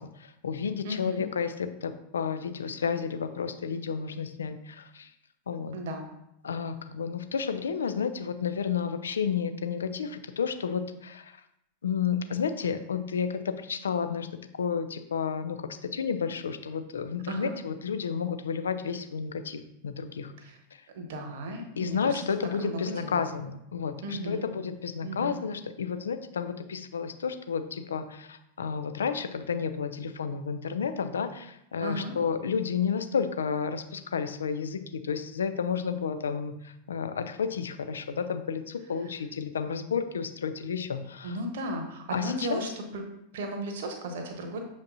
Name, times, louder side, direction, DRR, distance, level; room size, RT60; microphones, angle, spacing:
voice 1, 0.0-5.1 5.5-5.8 6.4-11.4 11.8-14.3 14.6-20.3 21.8-41.4 42.1-42.6, left 6 dB, 70° left, 9 dB, 0.5 m, -31 dB
voice 2, 0.8-1.2 5.7-6.1 17.3-17.5 20.4-20.6 20.9-22.2 22.6-23.3 24.0-24.5 25.0-25.4 31.8-32.1 41.2-43.0 43.3-44.6, right 1 dB, 55° right, 4 dB, 1.2 m, -35 dB
7.2 x 5.1 x 2.7 m, 0.81 s
figure-of-eight pair, 90°, 0 cm